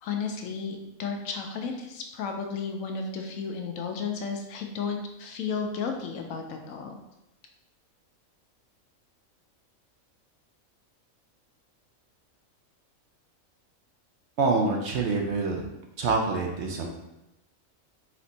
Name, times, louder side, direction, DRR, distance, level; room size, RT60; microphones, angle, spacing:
voice 1, 0.0-7.0, left 5 dB, 75° left, 3 dB, 1.0 m, -33 dB
voice 2, 14.4-15.6 16.0-16.9, right 3 dB, 65° right, 1 dB, 0.8 m, -26 dB
4.2 x 2.5 x 4.0 m, 0.90 s
omnidirectional pair, 1.4 m